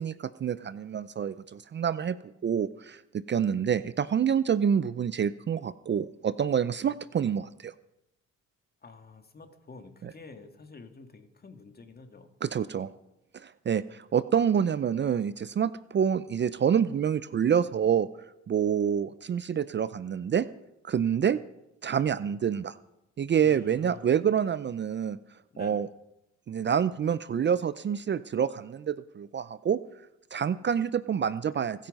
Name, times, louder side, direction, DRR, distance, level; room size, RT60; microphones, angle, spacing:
voice 1, 0.0-2.2 2.4-7.7 10.0-10.1 12.4-12.9 13.3-18.1 18.5-20.5 20.8-21.4 21.8-22.8 23.2-25.2 25.6-25.9 26.5-29.8 30.3-31.9, right 8 dB, 35° right, 15 dB, 0.5 m, -27 dB
voice 2, 8.8-12.3 23.4-24.1 25.5-25.8, left 4 dB, 30° left, 6 dB, 2.0 m, -49 dB
24.5 x 9.1 x 5.4 m, 0.87 s
cardioid pair, 90°, 30 cm